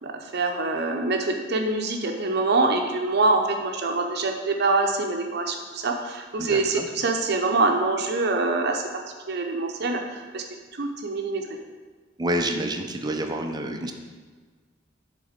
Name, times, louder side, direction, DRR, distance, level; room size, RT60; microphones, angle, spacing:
voice 1, 0.0-10.4 10.8-11.4, right 3 dB, 60° right, 3 dB, 0.7 m, -25 dB
voice 2, 6.4-6.9 12.2-13.9, right 1 dB, 20° right, 5 dB, 0.5 m, -28 dB
7.2 x 4.1 x 5.0 m, 1.4 s
head